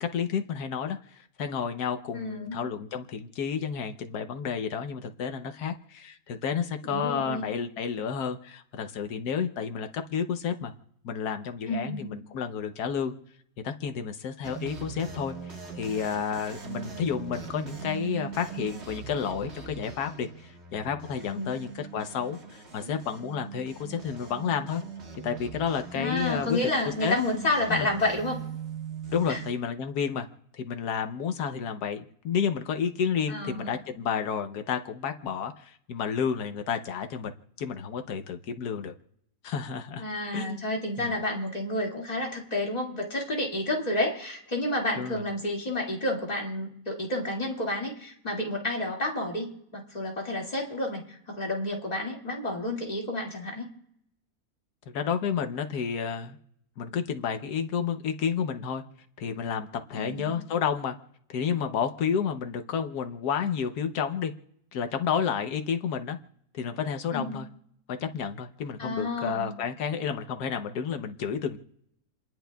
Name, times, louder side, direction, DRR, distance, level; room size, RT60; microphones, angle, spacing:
voice 1, 0.0-10.7 11.0-13.1 13.6-24.8 25.2-27.1 27.7-27.9 29.1-30.3 30.5-37.3 37.6-38.9 39.4-40.0 40.3-40.6 41.0-41.1 45.0-45.3 54.9-56.4 56.8-58.8 59.2-61.0 61.3-64.3 64.7-66.2 66.5-67.5 68.0-71.6, left 7 dB, 85° left, 6 dB, 1.3 m, -31 dB
voice 2, 2.1-2.6 6.8-7.5 11.7-12.1 21.3-21.6 25.9-28.4 29.3-29.4 33.3-33.8 40.0-53.7 60.0-60.4 67.1-67.4 68.8-69.5, left 1 dB, 25° left, -1 dB, 2.3 m, -30 dB
sound 1, 14.4-29.5, right 6 dB, 45° right, 1.7 m, -41 dB
29.5 x 11.0 x 2.3 m, 0.75 s
omnidirectional pair, 1.6 m